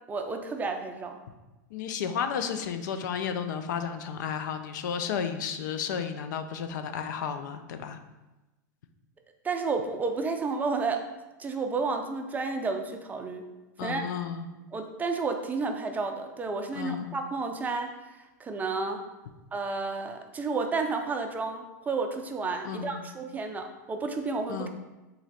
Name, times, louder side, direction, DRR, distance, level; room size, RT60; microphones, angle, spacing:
voice 1, 0.1-1.2 9.4-11.0 11.4-13.5 13.8-14.1 14.7-17.9 18.4-19.0 19.5-24.7, right 4 dB, 15° right, 5 dB, 0.4 m, -31 dB
voice 2, 1.7-8.0 13.8-14.5 16.7-17.1 22.6-23.0 24.5-24.7, left 7 dB, 75° left, 8 dB, 0.4 m, -32 dB
3.9 x 3.0 x 4.1 m, 1.1 s
hypercardioid pair, 120°, 10 cm